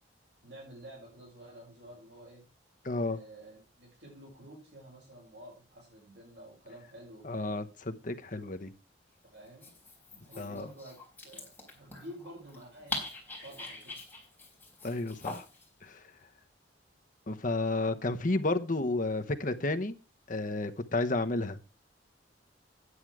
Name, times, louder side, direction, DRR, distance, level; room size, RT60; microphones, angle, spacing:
voice 1, 0.4-2.4 3.0-7.7 9.3-9.7 10.1-11.0 11.2-13.0 13.4-14.0 18.6-18.8, right 1 dB, 65° right, 5.6 m, -50 dB
voice 2, 2.8-3.2 7.2-8.7 10.4-10.7 14.8-15.4 15.8-16.0 17.3-19.9 20.3-21.6, left 2 dB, 45° left, 1.0 m, -31 dB
Dog, 9.5-15.7, left 2 dB, 10° left, 4.0 m, -43 dB
9.9 x 8.8 x 4.7 m
head